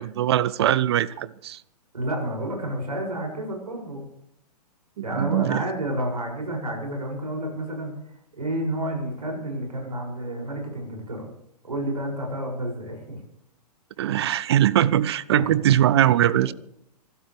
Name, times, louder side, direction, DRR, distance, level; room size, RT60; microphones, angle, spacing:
voice 1, 0.0-1.6 5.1-5.6 14.0-16.5, right 11 dB, 40° right, 0.5 m, -21 dB
voice 2, 1.9-4.0 5.0-7.9 8.3-11.3 11.6-13.2 15.3-15.7, right 1 dB, 70° right, 6.7 m, -30 dB
26.0 x 13.0 x 3.4 m
figure-of-eight pair, 115°, 21 cm